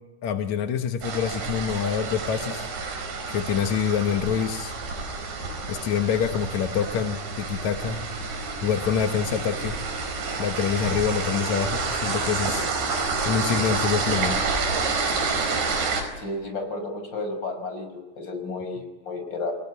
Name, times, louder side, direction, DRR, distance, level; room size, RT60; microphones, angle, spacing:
voice 1, 0.2-2.7 3.3-4.7 5.7-8.0 8.6-9.8 10.4-12.7 13.2-14.4, left 7 dB, 70° left, 6 dB, 1.7 m, -26 dB
sound 1, 1.0-16.0, right 4 dB, 75° right, 6.6 m, -29 dB
voice 2, 16.2-19.5, left 2 dB, 25° left, 5 dB, 6.2 m, -32 dB
29.0 x 18.0 x 9.6 m, 1.1 s
omnidirectional pair, 5.0 m